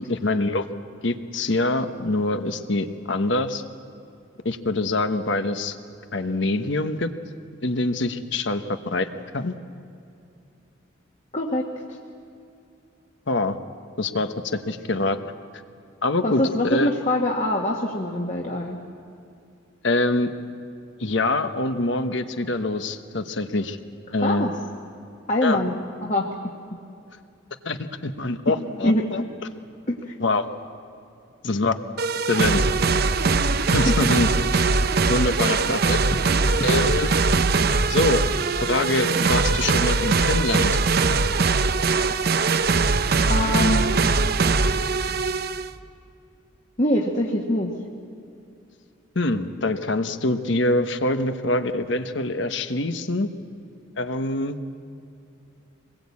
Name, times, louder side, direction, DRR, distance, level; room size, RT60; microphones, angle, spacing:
voice 1, 0.1-0.6 1.0-3.6 4.4-5.8 6.1-7.1 7.6-9.1 9.3-9.5 13.3-13.6 14.0-15.2 16.0-16.9 19.8-20.3 21.0-23.8 24.1-24.5 25.4-25.6 27.6-29.2 30.2-30.5 31.4-31.7 32.3-32.6 33.7-34.3 35.1-36.0 36.6-37.1 37.9-38.2 38.6-40.8 49.1-53.3 54.0-54.6, left 2 dB, 65° left, 8 dB, 1.2 m, -24 dB
voice 2, 11.3-11.6 16.2-18.8 24.2-24.5 25.3-25.7 26.0-26.3 28.8-29.2 29.9-30.1 33.9-34.1 43.3-44.0 46.8-47.7, left 1 dB, 35° left, -1 dB, 1.6 m, -23 dB
sound 1, 32.0-45.7, right 4 dB, 50° right, 0.7 m, -21 dB
25.5 x 21.0 x 8.5 m, 2.6 s
head